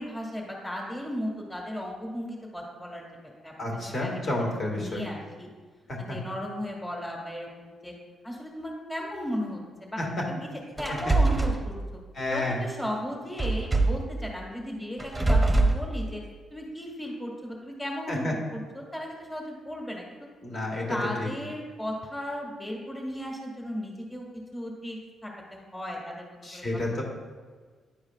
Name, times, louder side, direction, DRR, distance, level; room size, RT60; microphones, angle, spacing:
voice 1, 0.0-3.0 3.4-5.5 6.0-7.9 8.2-10.0 10.3-10.5 10.8-11.7 12.3-16.2 16.5-20.0 20.9-24.3 24.5-26.6 26.9-27.0, equal, 15° left, -2 dB, 1.6 m, -36 dB
voice 2, 3.6-5.0 5.9-6.2 10.0-10.2 10.9-11.1 12.1-12.6 18.1-18.3 20.4-21.3 26.4-27.0, left 1 dB, 50° left, -1 dB, 1.8 m, -30 dB
sound 1, 10.8-11.6 13.4-14.1 15.0-15.8, right 2 dB, 10° right, 0.8 m, -23 dB
10.5 x 4.8 x 2.4 m, 1.5 s
cardioid pair, 75°, 0 cm